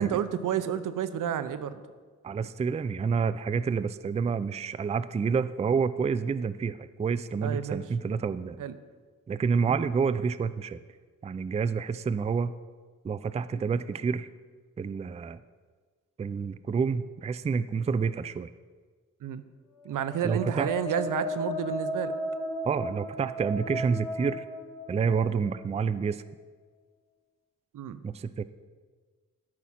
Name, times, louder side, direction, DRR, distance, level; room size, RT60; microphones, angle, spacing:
voice 1, 0.0-1.8 7.4-7.8 8.6-8.8 19.2-19.4 19.8-22.1 27.7-28.0, right 9 dB, 85° right, 12 dB, 0.7 m, -30 dB
voice 2, 2.2-8.6 9.3-10.8 11.2-12.5 13.0-14.3 14.8-15.4 16.2-18.5 20.2-20.7 22.6-24.4 24.9-26.2 28.0-28.4, right 5 dB, 20° right, 14 dB, 0.3 m, -28 dB
sound 1, 19.9-25.6, equal, 15° left, 2.1 m, -35 dB
12.5 x 6.1 x 5.6 m, 1.5 s
cardioid pair, 90°, 31 cm